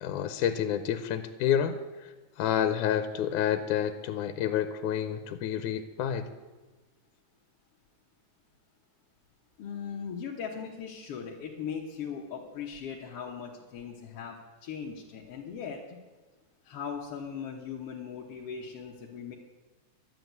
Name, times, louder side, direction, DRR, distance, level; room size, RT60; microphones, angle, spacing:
voice 1, 0.0-2.1 2.4-6.3, left 9 dB, 90° left, 10 dB, 2.1 m, -29 dB
voice 2, 9.6-14.4 14.6-16.0 16.6-19.4, left 7 dB, 60° left, -2 dB, 1.9 m, -39 dB
11.5 x 7.8 x 9.3 m, 1.2 s
omnidirectional pair, 3.5 m